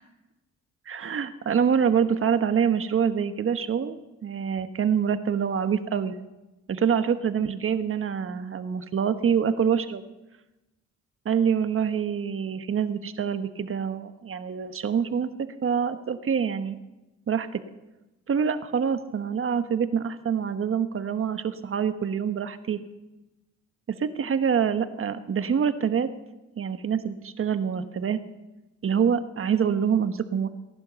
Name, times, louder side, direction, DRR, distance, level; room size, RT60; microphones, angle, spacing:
voice 1, 0.9-6.1 6.7-10.0 11.2-15.3 15.6-16.8 17.3-17.6 18.3-22.8 24.0-26.1 26.6-28.2 28.8-30.5, right 7 dB, 45° right, 9 dB, 1.2 m, -26 dB
18.0 x 11.5 x 6.9 m, 1.0 s
cardioid pair, 90°, 30 cm